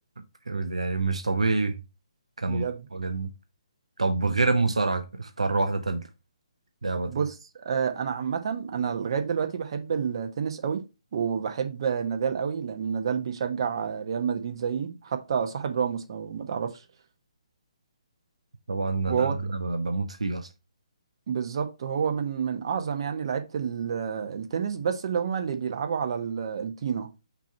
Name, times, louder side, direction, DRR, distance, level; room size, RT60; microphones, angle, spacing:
voice 1, 0.5-1.8 2.4-2.6 2.9-3.3 4.0-6.1 6.8-7.1 18.7-20.5, right 3 dB, 80° right, 0.6 m, -27 dB
voice 2, 2.5-2.9 7.1-7.4 7.6-10.8 11.1-16.8 19.1-19.3 21.3-27.1, right 7 dB, 50° right, 1.1 m, -29 dB
5.9 x 3.0 x 5.6 m
figure-of-eight pair, 140°, 3 cm